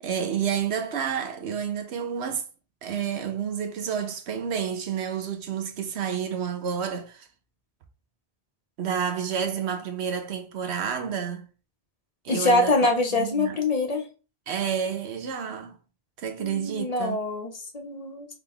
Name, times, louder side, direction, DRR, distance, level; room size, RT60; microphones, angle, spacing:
voice 1, 0.0-2.4 2.8-7.3 8.8-11.5 12.2-12.7 13.1-13.6 14.5-15.8 16.2-17.2, right 7 dB, 90° right, 1.0 m, -30 dB
voice 2, 12.3-14.1 16.4-18.3, left 2 dB, 40° left, 0.8 m, -24 dB
3.8 x 3.4 x 3.5 m
omnidirectional pair, 1.1 m